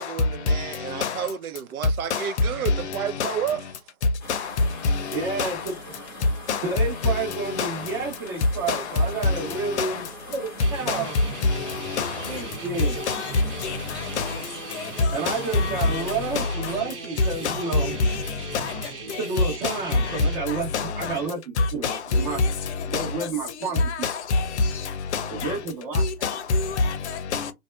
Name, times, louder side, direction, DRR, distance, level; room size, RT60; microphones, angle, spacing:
voice 1, 0.0-3.6, right 8 dB, 65° right, 0.6 m, -31 dB
voice 2, 0.9-1.2 2.1-2.2 2.7-3.4 4.3-4.5 4.8-5.6 6.5-6.7 7.0-7.8 8.7-8.8 9.2-10.0 10.9-11.0 11.4-12.2 13.1-13.3 13.6-13.8 14.2-14.4 15.0-16.0 16.4-16.7 17.4-18.2 18.5-18.7 19.4-21.2 21.6-22.5 22.9-23.1 23.8-24.5 25.1-25.5 25.9-27.5, left 3 dB, 45° left, 0.6 m, -26 dB
sound 1, 4.2-16.4, left 1 dB, 5° left, 0.6 m, -41 dB
voice 3, 5.1-5.6 6.6-11.1 12.3-13.0 15.1-17.9 19.2-20.7 20.9-22.4 22.9-24.1 25.4-26.0, right 4 dB, 35° right, 1.1 m, -30 dB
sound 2, 10.6-20.4, right 3 dB, 85° right, 1.1 m, -38 dB
2.6 x 2.3 x 2.3 m
hypercardioid pair, 135°, 46 cm